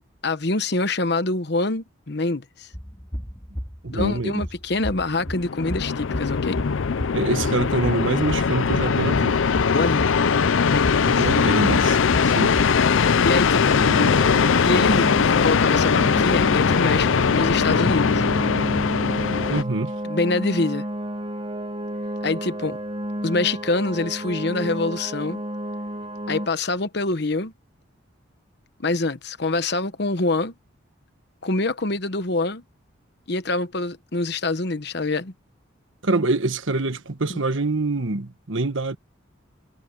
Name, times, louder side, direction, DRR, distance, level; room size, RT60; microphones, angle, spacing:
voice 1, 0.2-2.7 3.9-6.6 9.7-10.2 10.7-11.3 13.2-13.8 14.6-18.2 20.0-20.9 22.2-22.8 23.2-25.4 26.3-27.5 28.8-30.5 31.4-32.6 33.3-35.3 37.3-37.4, left 2 dB, 55° left, 1.1 m, -25 dB
sound 1, 2.7-12.6, equal, 15° left, 2.7 m, -34 dB
voice 2, 3.8-4.3 7.1-9.4 11.0-12.6 19.5-19.9 36.0-39.0, right 2 dB, 70° right, 1.3 m, -25 dB
sound 2, 5.2-19.6, left 6 dB, 75° left, 0.5 m, -20 dB
sound 3, 13.7-26.5, equal, 25° right, 1.0 m, -31 dB
head